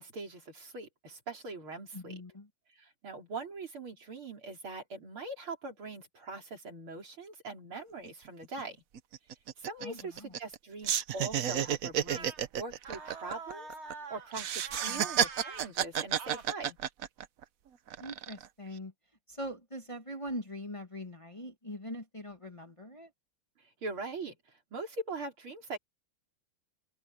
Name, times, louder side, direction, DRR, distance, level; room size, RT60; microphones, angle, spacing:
voice 1, 0.0-2.2 2.7-8.8 9.6-16.8 23.8-25.8, right 3 dB, 85° right, 5.3 m, -42 dB
voice 2, 1.9-2.5 9.8-10.4 14.8-15.1 18.0-18.9 19.3-23.1, equal, 15° left, 1.6 m, -42 dB
sound 1, 8.1-8.2 8.4-8.6 9.0-10.6 10.8-13.9 14.3-17.4 17.9-18.5, right 9 dB, 55° right, 1.0 m, -31 dB
sound 2, 12.1-12.4 12.8-14.3 14.6-15.7 16.2-16.5, right 4 dB, 40° right, 1.3 m, -44 dB
open air
omnidirectional pair, 2.3 m